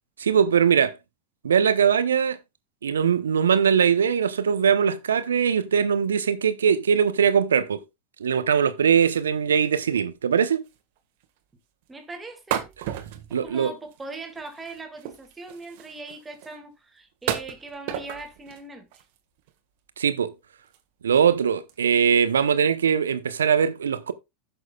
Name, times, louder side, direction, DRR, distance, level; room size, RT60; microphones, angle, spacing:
voice 1, 0.2-0.9 1.4-2.4 2.8-7.8 8.2-10.6 13.3-13.7 20.0-20.3 21.0-24.1, right 7 dB, 85° right, 0.8 m, -21 dB
sound 1, 9.8-10.0 10.4-10.5 10.6-11.0 11.2-11.3 12.5-14.0 14.3-16.6 17.2-18.6 18.9-19.5 20.0-20.1 20.6-20.8 21.1-21.4 21.7-21.9, right 11 dB, 60° right, 1.4 m, -34 dB
voice 2, 11.9-12.7 13.4-19.0, right 3 dB, 15° right, 2.1 m, -40 dB
15.5 x 6.3 x 2.3 m
hypercardioid pair, 90°, 0 cm